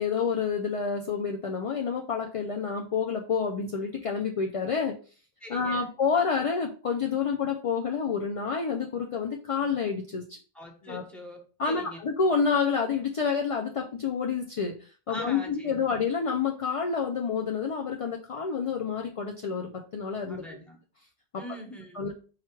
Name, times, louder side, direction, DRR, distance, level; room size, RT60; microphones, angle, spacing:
voice 1, 0.0-4.9 5.5-10.4 10.8-11.0 11.6-20.4 21.9-22.1, left 5 dB, 50° left, 2 dB, 0.4 m, -28 dB
voice 2, 5.4-5.9 10.5-11.4 11.6-12.0 15.1-15.8 20.3-20.8 21.3-22.0, equal, ahead, 0 dB, 1.1 m, -42 dB
4.4 x 2.4 x 4.4 m, 0.38 s
omnidirectional pair, 1.1 m